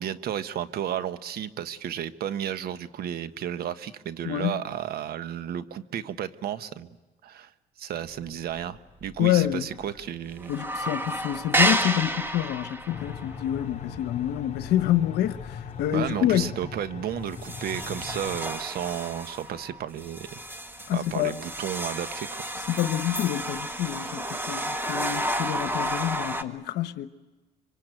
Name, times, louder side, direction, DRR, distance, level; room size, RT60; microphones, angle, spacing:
voice 1, 0.0-6.9 7.2-7.5 7.8-10.5 15.9-20.3 20.9-22.3, right 10 dB, 65° right, 1.3 m, -33 dB
voice 2, 4.2-4.6 9.2-9.7 10.5-16.5 20.9-21.3 22.6-27.1, left 12 dB, 80° left, 1.1 m, -27 dB
sound 1, 8.2-8.7 9.0-9.1 9.4-10.1 10.3-15.6 16.0-16.2 16.7-16.8 17.3-26.4, right 1 dB, 10° right, 1.7 m, -31 dB
sound 2, 12.9-18.4, left 7 dB, 40° left, 5.0 m, -40 dB
25.5 x 24.0 x 9.1 m
cardioid pair, 110°, 17 cm